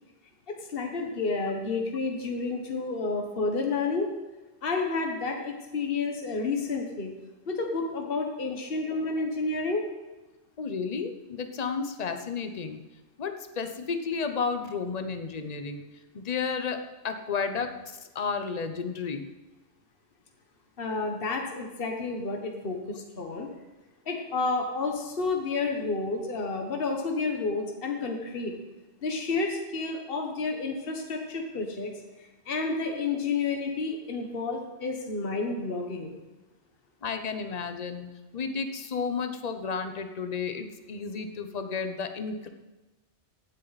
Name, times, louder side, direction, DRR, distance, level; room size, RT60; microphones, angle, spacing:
voice 1, 0.5-4.1 4.6-7.1 7.5-9.9 20.8-23.5 24.0-28.5 29.0-31.9 32.2-36.1, left 3 dB, 55° left, 2 dB, 1.5 m, -30 dB
voice 2, 10.6-12.8 13.2-15.8 16.1-16.8 17.0-19.3 37.0-42.5, left 5 dB, 40° left, 7 dB, 1.0 m, -32 dB
15.5 x 9.9 x 4.1 m, 1.1 s
omnidirectional pair, 1.2 m